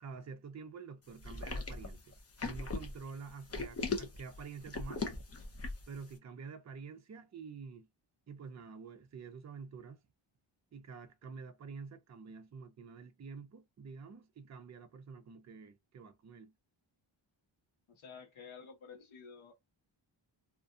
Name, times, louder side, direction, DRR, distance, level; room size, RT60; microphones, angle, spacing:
voice 1, 0.0-2.2 2.4-5.1 5.9-7.9 8.3-10.0 10.7-16.5, right 5 dB, 35° right, 0.5 m, -48 dB
sound 1, 1.2-6.0, left 3 dB, 30° left, 0.6 m, -39 dB
voice 2, 17.9-19.7, left 6 dB, 75° left, 1.0 m, -52 dB
2.5 x 2.3 x 2.4 m
wide cardioid pair, 165°, 48 cm